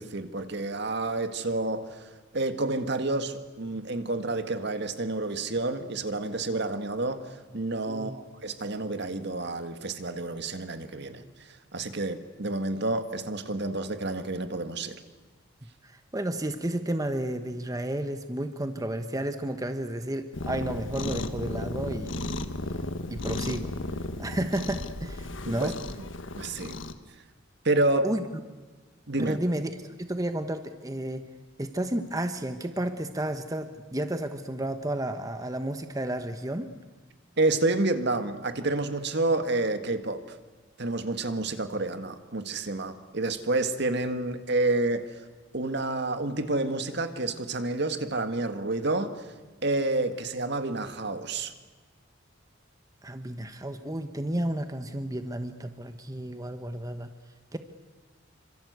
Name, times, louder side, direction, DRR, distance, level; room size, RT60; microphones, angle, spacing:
voice 1, 0.0-11.2 11.7-15.0 25.4-25.7 26.4-26.8 27.6-28.1 29.1-29.4 37.4-40.4 40.8-45.1 45.5-49.2 49.6-51.5, right 2 dB, 55° right, 9 dB, 1.9 m, -29 dB
voice 2, 15.8-22.3 23.1-23.7 24.2-25.8 28.0-28.2 29.2-29.7 30.0-31.2 31.6-36.7 53.0-57.1 57.5-57.6, right 1 dB, 15° right, 8 dB, 1.2 m, -32 dB
Cat, 20.3-26.9, left 2 dB, 70° left, 1.6 m, -34 dB
27.5 x 25.5 x 8.2 m, 1.3 s
head